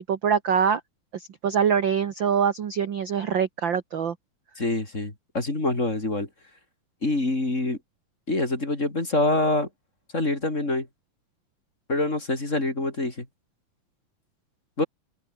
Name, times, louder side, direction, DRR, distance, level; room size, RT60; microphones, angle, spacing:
voice 1, 0.1-0.8 1.4-4.1, right 7 dB, 60° right, 1.2 m, -24 dB
voice 2, 4.6-6.3 7.0-7.8 8.3-9.7 10.1-10.9 11.9-13.3 14.8-14.9, left 2 dB, 20° left, 3.9 m, -25 dB
omnidirectional pair, 4.1 m